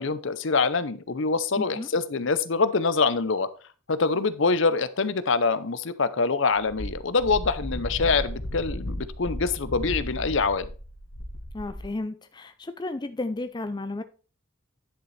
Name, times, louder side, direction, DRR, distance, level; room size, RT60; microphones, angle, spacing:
voice 1, 0.0-3.5 3.9-10.7, left 4 dB, 60° left, 0.7 m, -25 dB
voice 2, 1.6-1.9 11.5-14.0, left 2 dB, 20° left, 0.4 m, -33 dB
Wind, 6.6-11.9, left 1 dB, 75° left, 1.8 m, -35 dB
10.5 x 6.8 x 3.3 m
head